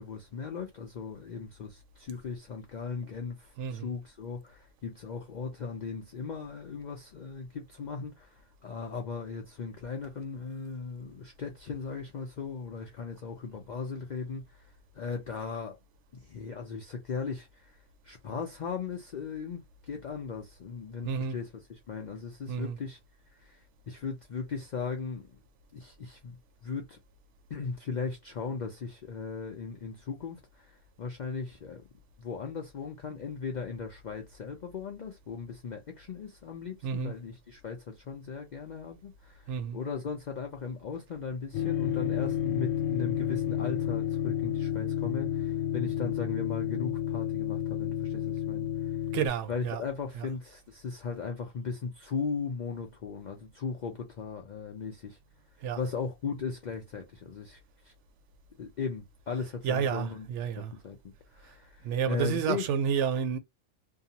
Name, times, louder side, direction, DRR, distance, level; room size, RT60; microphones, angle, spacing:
voice 1, 0.0-15.8 16.1-23.0 23.3-25.4 25.7-26.4 26.6-27.0 27.5-31.9 32.2-49.0 49.5-55.2 55.6-57.9 58.6-60.3 60.6-62.6, left 5 dB, 65° left, 0.4 m, -38 dB
voice 2, 21.0-21.3 22.5-22.8 36.8-37.1 39.5-39.8 49.1-49.8 55.6-55.8 59.6-60.7 61.8-63.4, right 7 dB, 70° right, 0.8 m, -30 dB
sound 1, 41.5-49.3, left 10 dB, 85° left, 1.0 m, -31 dB
2.7 x 2.3 x 2.7 m
omnidirectional pair, 1.3 m